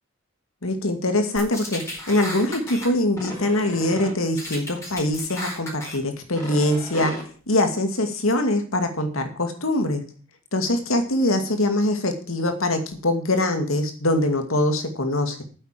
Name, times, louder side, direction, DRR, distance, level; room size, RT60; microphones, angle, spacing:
voice 1, 0.6-7.1 7.5-10.0 10.5-15.4, left 1 dB, 85° left, 6 dB, 2.3 m, -23 dB
sound 1, 1.4-2.9 3.2-4.1 4.4-6.0 6.3-7.2, left 1 dB, 15° left, 4.4 m, -34 dB
9.4 x 7.9 x 7.6 m, 0.41 s
head